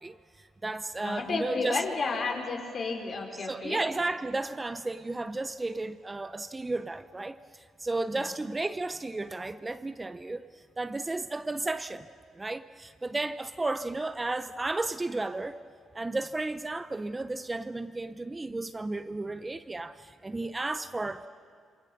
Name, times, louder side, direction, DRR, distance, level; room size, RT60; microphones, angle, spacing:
voice 1, 0.0-1.8 3.4-12.1 12.3-15.6 15.9-21.3, right 2 dB, 20° right, 0.7 m, -33 dB
voice 2, 1.0-3.8 8.1-8.3, left 4 dB, 50° left, 4.2 m, -32 dB
28.0 x 23.5 x 6.9 m
cardioid pair, 90°, 0 cm